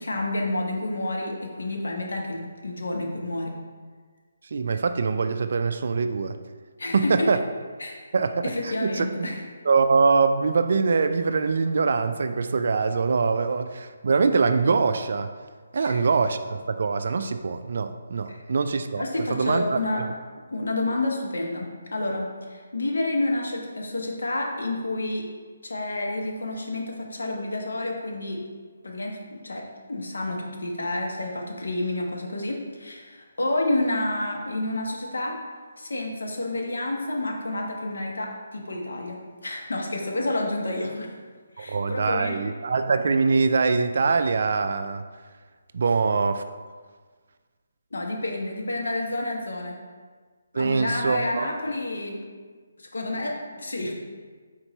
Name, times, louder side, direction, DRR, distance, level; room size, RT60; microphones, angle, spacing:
voice 1, 0.0-3.5 6.8-7.3 7.8-8.0 8.4-9.4 15.8-16.0 18.3-18.4 19.0-20.0 20.5-25.2 25.6-28.4 28.8-35.4 35.8-41.1 41.6-42.4 47.9-49.8 50.5-52.2 52.8-53.9, left 2 dB, 85° left, 0 dB, 0.9 m, -29 dB
voice 2, 4.5-6.4 6.9-7.4 8.1-9.3 9.6-15.3 15.7-19.0 19.3-20.1 41.6-45.0 45.7-46.4 50.5-51.4, right 4 dB, 60° right, 9 dB, 0.3 m, -23 dB
4.2 x 3.0 x 4.1 m, 1.5 s
hypercardioid pair, 165°, 0 cm